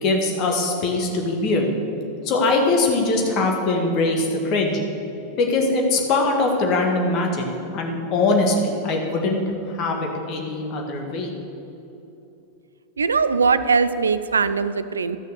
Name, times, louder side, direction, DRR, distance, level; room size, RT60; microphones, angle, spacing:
voice 1, 0.0-1.7 2.2-4.8 5.4-7.4 7.7-9.4 9.7-11.3, left 2 dB, 40° left, 1 dB, 1.8 m, -22 dB
voice 2, 13.0-15.2, right 5 dB, 75° right, 13 dB, 0.4 m, -20 dB
12.5 x 6.4 x 6.7 m, 2.9 s
figure-of-eight pair, 90°, 0 cm